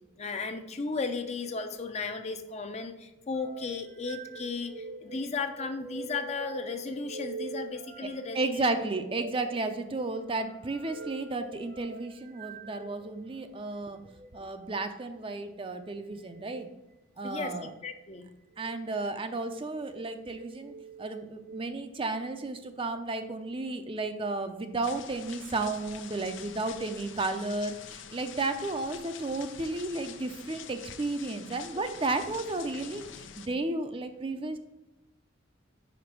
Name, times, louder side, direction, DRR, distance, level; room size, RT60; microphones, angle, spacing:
voice 1, 0.2-8.6 17.2-18.3, left 4 dB, 35° left, 7 dB, 0.6 m, -35 dB
sound 1, 3.3-13.3 14.0-14.3 16.3-16.6 17.4-18.0 18.5-18.8 19.6-20.1 20.6-21.6, right 3 dB, 55° right, 0.9 m, -44 dB
voice 2, 8.3-14.0 14.3-16.7 17.2-17.7 18.6-20.7 21.0-34.6, right 2 dB, 30° right, 8 dB, 0.5 m, -33 dB
sound 2, 24.8-33.5, left 8 dB, 85° left, 0.6 m, -46 dB
5.2 x 5.1 x 5.8 m, 1.0 s
head